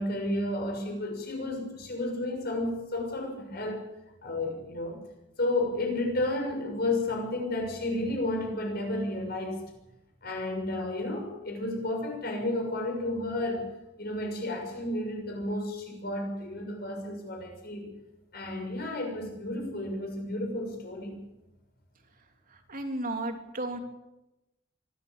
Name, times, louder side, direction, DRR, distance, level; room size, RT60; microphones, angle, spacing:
voice 1, 0.0-3.8 4.2-5.0 5.4-9.6 10.2-13.6 14.0-17.9 18.3-21.2, left 1 dB, 55° left, 2 dB, 6.6 m, -32 dB
voice 2, 22.7-23.8, right 2 dB, 45° right, 4 dB, 3.2 m, -33 dB
25.0 x 13.5 x 8.8 m, 0.97 s
head